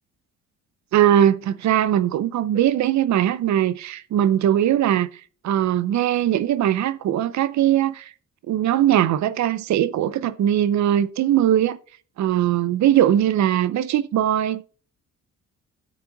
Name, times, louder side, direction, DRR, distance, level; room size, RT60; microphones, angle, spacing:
voice 1, 0.9-5.1 5.4-8.1 8.5-11.8 12.2-14.6, right 11 dB, 65° right, 0.6 m, -20 dB
12.0 x 6.3 x 3.8 m
cardioid pair, 90°, 30 cm